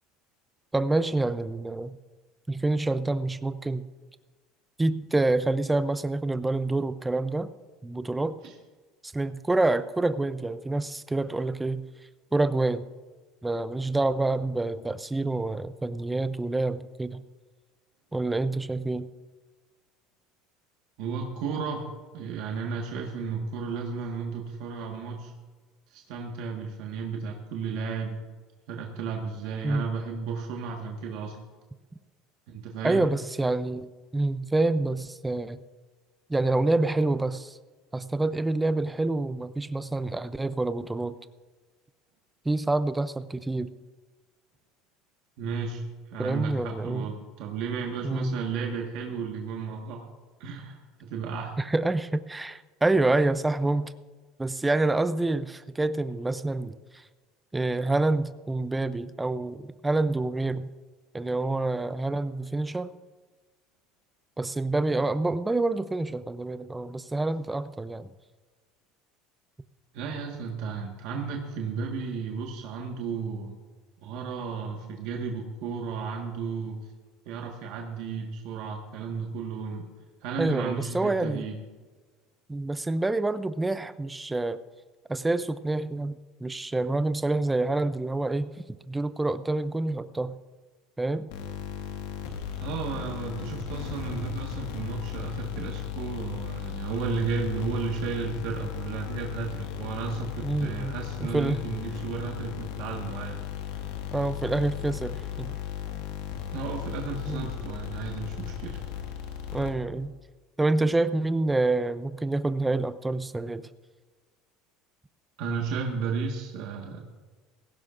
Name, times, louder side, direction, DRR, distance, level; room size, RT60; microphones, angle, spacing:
voice 1, 0.7-2.0 2.5-3.9 4.8-7.5 7.8-8.4 9.1-11.8 12.3-12.9 13.4-17.2 18.1-19.1 29.6-29.9 32.8-33.9 34.1-35.6 36.3-37.6 37.9-41.1 42.4-43.7 46.2-47.1 48.0-48.4 51.6-53.9 54.4-57.0 57.5-60.7 61.1-62.9 64.4-68.1 80.4-81.5 82.5-84.6 85.1-88.5 88.9-90.4 91.0-91.3 100.4-101.6 104.1-105.5 107.3-107.5 109.5-110.1 110.6-113.7, right 2 dB, 10° right, 13 dB, 0.5 m, -27 dB
voice 2, 21.0-25.3 25.9-28.2 28.7-31.4 32.5-33.1 45.4-50.1 50.4-51.6 69.9-73.5 74.0-76.8 77.2-79.9 80.2-81.6 92.6-103.4 106.5-108.8 115.4-117.0, right 5 dB, 70° right, 1 dB, 1.6 m, -33 dB
sound 1, 91.3-110.1, left 9 dB, 85° left, 1.8 m, -36 dB
18.0 x 16.0 x 2.6 m, 1.4 s
supercardioid pair, 120°, 0 cm